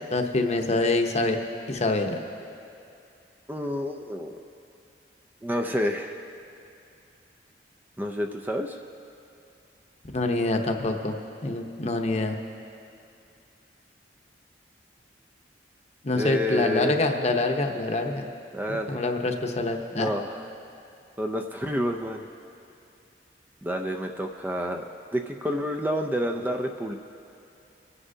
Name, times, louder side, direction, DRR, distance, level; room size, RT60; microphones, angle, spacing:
voice 1, 0.1-1.4 1.7-2.2 10.1-11.2 11.4-12.4 16.0-18.2 18.7-20.1, left 2 dB, 40° left, 4 dB, 0.8 m, -25 dB
voice 2, 3.5-4.4 5.4-6.2 8.0-8.8 16.1-17.0 18.5-19.0 19.9-20.4 21.2-22.3 23.6-24.8 25.1-26.9, equal, 10° right, 4 dB, 0.4 m, -29 dB
27.0 x 9.7 x 2.7 m, 2.6 s
head